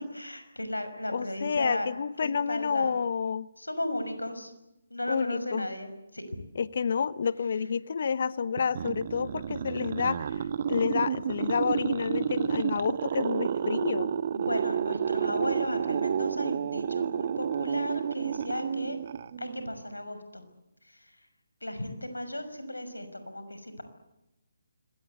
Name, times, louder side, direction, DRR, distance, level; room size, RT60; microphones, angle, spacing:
voice 1, 0.1-1.9 2.2-3.0 3.6-4.5 4.9-6.4 14.3-19.0 19.4-20.4 20.9-21.1 21.6-23.8, left 1 dB, 90° left, 9 dB, 6.0 m, -35 dB
voice 2, 1.1-3.5 5.1-5.6 6.5-10.3 10.7-14.1, left 6 dB, 55° left, 17 dB, 1.0 m, -29 dB
sound 1, 8.6-19.7, right 8 dB, 45° right, 1.1 m, -30 dB
26.5 x 23.0 x 8.2 m, 0.88 s
figure-of-eight pair, 145°, 0 cm